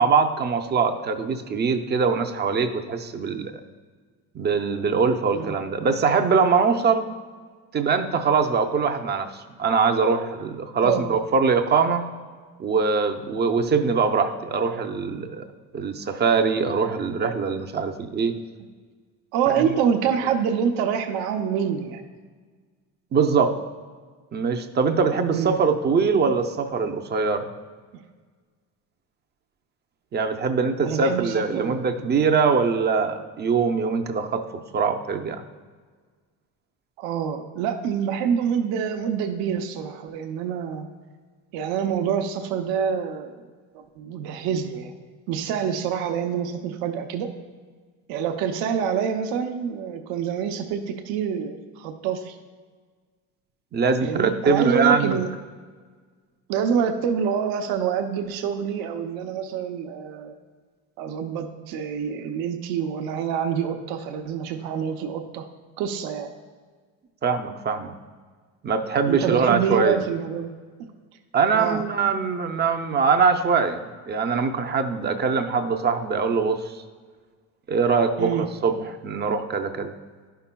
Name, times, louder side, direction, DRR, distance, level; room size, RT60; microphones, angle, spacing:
voice 1, 0.0-3.6 4.3-7.1 7.7-12.0 12.6-15.4 15.7-18.3 19.6-19.7 23.1-23.6 24.3-27.5 30.1-34.4 34.7-35.4 53.7-55.2 67.2-67.9 68.6-70.0 71.3-76.8 77.7-79.9, right 5 dB, 30° right, 6 dB, 0.5 m, -22 dB
voice 2, 19.3-22.0 25.3-25.6 30.8-32.1 37.0-40.9 41.5-43.3 43.7-44.9 45.3-47.3 48.1-52.4 54.0-55.3 56.5-60.3 61.0-65.5 65.8-66.3 69.0-70.5 71.5-71.8 78.2-78.5, right 7 dB, 85° right, 5 dB, 0.7 m, -26 dB
11.5 x 5.6 x 2.2 m, 1.5 s
cardioid pair, 120°, 35 cm